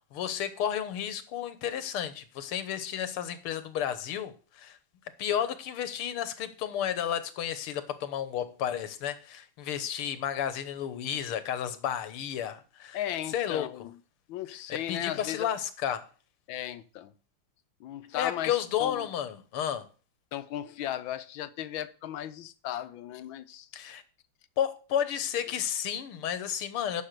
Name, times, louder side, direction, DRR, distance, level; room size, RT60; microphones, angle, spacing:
voice 1, 0.1-4.8 5.2-13.0 13.3-13.9 14.5-16.0 18.1-19.9 23.7-24.0 24.6-27.0, left 9 dB, 90° left, 2.0 m, -32 dB
voice 2, 12.9-13.9 14.3-15.5 16.5-17.1 17.8-18.5 18.8-19.0 20.3-23.7, left 12 dB, 70° left, 1.4 m, -36 dB
10.0 x 6.5 x 6.6 m
omnidirectional pair, 2.3 m